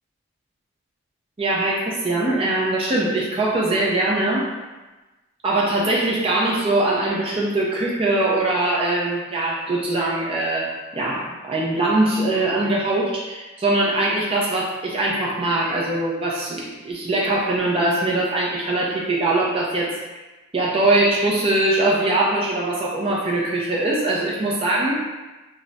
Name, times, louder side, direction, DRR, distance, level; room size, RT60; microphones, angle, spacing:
voice 1, 1.4-4.5 5.4-19.9 20.5-25.0, right 2 dB, 25° right, -4 dB, 0.4 m, -22 dB
2.3 x 2.1 x 3.9 m, 1.1 s
head